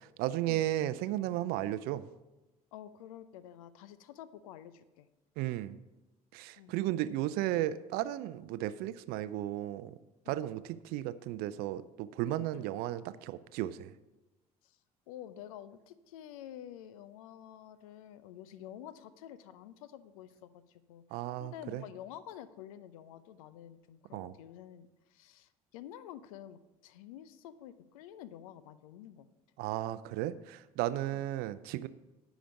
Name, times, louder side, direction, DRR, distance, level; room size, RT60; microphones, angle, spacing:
voice 1, 0.2-2.1 5.4-5.8 6.3-9.9 10.3-13.9 21.1-21.8 24.1-24.3 29.6-31.9, right 14 dB, 55° right, 15 dB, 0.5 m, -34 dB
voice 2, 2.7-5.1 6.6-6.7 10.2-10.5 12.5-12.7 14.6-14.8 15.1-29.3 31.1-31.3, left 11 dB, 65° left, 16 dB, 0.6 m, -49 dB
10.0 x 5.1 x 7.0 m, 1.0 s
figure-of-eight pair, 55°, 19 cm